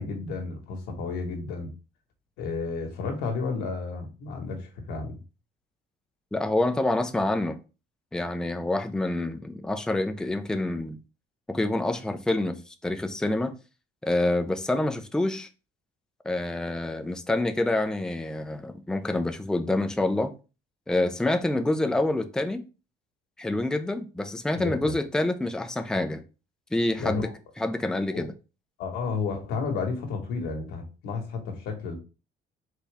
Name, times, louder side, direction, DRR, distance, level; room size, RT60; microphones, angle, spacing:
voice 1, 0.0-1.7 2.4-5.2 24.5-24.9 27.0-27.3 28.1-28.3 28.8-31.9, left 4 dB, 90° left, 1.6 m, -32 dB
voice 2, 6.3-7.6 8.1-11.0 11.5-13.5 14.0-15.5 16.2-20.3 20.9-22.6 23.4-26.2 26.7-27.3 27.6-28.3, left 2 dB, 5° left, 0.5 m, -27 dB
4.4 x 3.5 x 3.4 m
cardioid pair, 110°, 17 cm